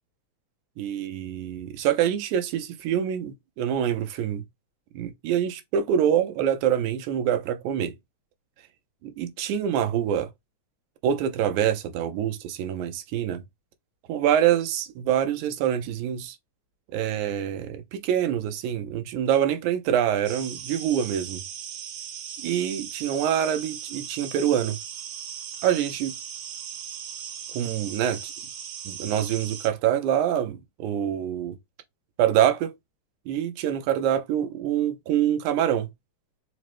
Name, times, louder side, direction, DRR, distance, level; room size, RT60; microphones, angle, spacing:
voice 1, 0.8-4.4 4.9-7.9 9.0-10.3 11.0-13.4 14.1-16.4 16.9-21.4 22.4-24.8 25.6-26.1 27.5-28.3 28.9-31.6 32.2-32.7 33.3-35.9, right 10 dB, 90° right, 2.1 m, -25 dB
sound 1, 20.3-29.7, right 8 dB, 70° right, 1.8 m, -38 dB
4.9 x 2.1 x 3.0 m
omnidirectional pair, 3.3 m